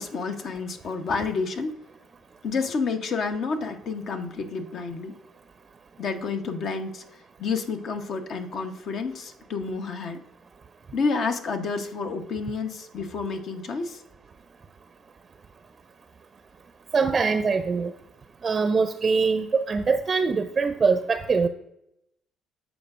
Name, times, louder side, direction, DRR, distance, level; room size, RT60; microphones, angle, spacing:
voice 1, 0.0-1.7 2.4-5.1 6.0-7.0 7.4-10.2 10.9-14.0, left 4 dB, 60° left, 6 dB, 0.9 m, -29 dB
voice 2, 16.9-17.9 18.4-21.5, right 4 dB, 40° right, 10 dB, 0.5 m, -23 dB
14.0 x 5.0 x 2.5 m, 0.82 s
hypercardioid pair, 55°, 0 cm